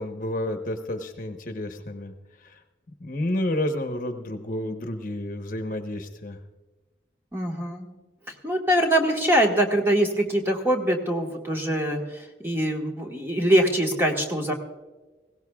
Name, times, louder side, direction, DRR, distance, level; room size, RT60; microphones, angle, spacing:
voice 1, 0.0-2.1 2.4-2.6 3.0-6.4, left 1 dB, 45° left, 6 dB, 1.0 m, -30 dB
voice 2, 7.3-7.9 8.4-14.5, right 1 dB, 15° right, 0 dB, 1.5 m, -23 dB
20.5 x 17.0 x 2.4 m, 1.2 s
head